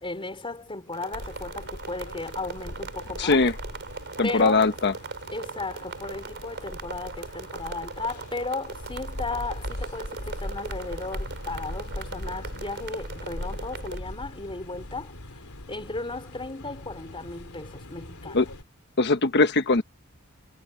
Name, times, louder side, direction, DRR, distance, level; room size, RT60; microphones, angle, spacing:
voice 1, 0.0-3.5 4.2-4.7 5.3-15.2 15.7-18.5, left 3 dB, 25° left, 3.6 m, -35 dB
crackles-linear, 0.9-14.0, right 4 dB, 55° right, 3.7 m, -40 dB
sound 1, 1.1-18.6, left 1 dB, 90° left, 3.0 m, -40 dB
voice 2, 3.2-3.5 4.2-4.9 18.3-18.5 19.0-19.8, left 3 dB, 50° left, 1.1 m, -21 dB
head